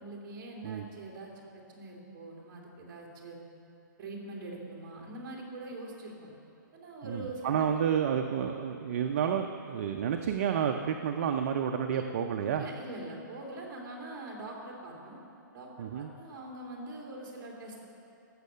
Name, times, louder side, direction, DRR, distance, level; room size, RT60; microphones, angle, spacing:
voice 1, 0.0-3.4 4.0-6.3 6.7-7.8 11.9-12.0 12.6-15.2 15.5-17.8, right 2 dB, 20° right, -4 dB, 2.4 m, -43 dB
voice 2, 7.0-12.6 15.8-16.1, right 8 dB, 40° right, 5 dB, 0.5 m, -30 dB
15.0 x 6.4 x 6.8 m, 2.7 s
hypercardioid pair, 165°, 11 cm